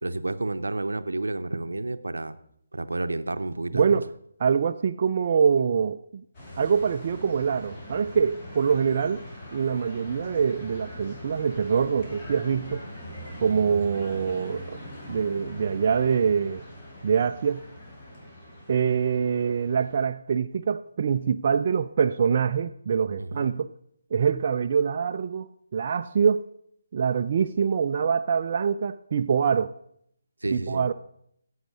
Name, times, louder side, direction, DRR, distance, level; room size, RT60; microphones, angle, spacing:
voice 1, 0.0-2.4 2.7-4.0 23.2-23.6 30.4-30.8, right 2 dB, 80° right, 0.7 m, -30 dB
voice 2, 3.7-4.1 4.4-6.2 6.6-9.2 9.5-12.9 13.4-14.8 15.1-16.6 17.0-17.6 18.7-23.7 24.1-26.5 26.9-29.7 30.5-30.9, right 6 dB, 45° right, 0.4 m, -24 dB
sound 1, 6.3-20.0, left 1 dB, 35° left, 4.1 m, -42 dB
11.0 x 7.8 x 6.1 m
figure-of-eight pair, 145°, 0 cm